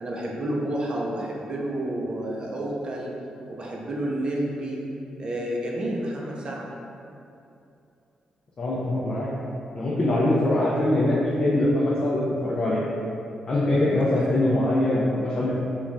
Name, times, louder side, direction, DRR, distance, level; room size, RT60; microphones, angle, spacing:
voice 1, 0.0-3.1 3.5-4.8 5.2-6.7 13.8-14.2, right 1 dB, 40° right, -2 dB, 0.4 m, -30 dB
voice 2, 8.6-9.3 9.7-12.8 13.5-15.5, left 1 dB, 40° left, -7 dB, 0.4 m, -23 dB
3.1 x 2.2 x 2.5 m, 2.7 s
cardioid pair, 95°, 2 cm